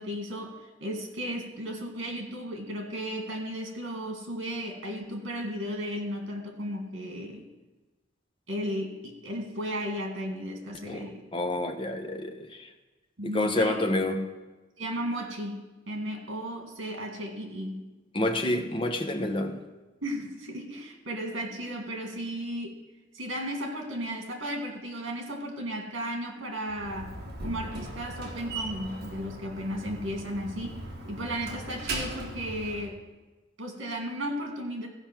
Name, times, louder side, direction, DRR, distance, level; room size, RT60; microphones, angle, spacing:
voice 1, 0.0-7.5 8.5-11.2 13.2-13.8 14.8-17.8 20.0-22.8 23.1-27.2 27.4-33.0 33.6-34.9, equal, 80° right, 2.0 m, -35 dB
voice 2, 11.3-12.7 13.2-14.3 18.1-19.6, left 1 dB, 25° left, 0.9 m, -28 dB
Slam, 26.7-32.9, right 2 dB, 55° right, 1.7 m, -39 dB
14.5 x 5.3 x 6.0 m
head